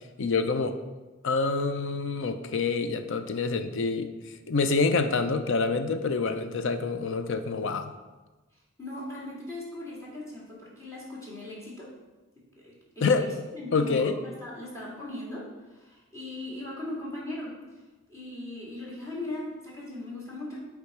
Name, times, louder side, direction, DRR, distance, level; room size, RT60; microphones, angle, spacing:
voice 1, 0.2-0.8 1.2-4.1 4.5-7.9 13.0-13.3 13.7-14.2, left 4 dB, 60° left, 9 dB, 0.5 m, -26 dB
voice 2, 8.8-11.9 12.6-13.2 13.5-14.1 14.4-17.5 18.1-20.6, left 1 dB, 15° left, -5 dB, 2.1 m, -38 dB
8.4 x 3.6 x 4.9 m, 1.2 s
head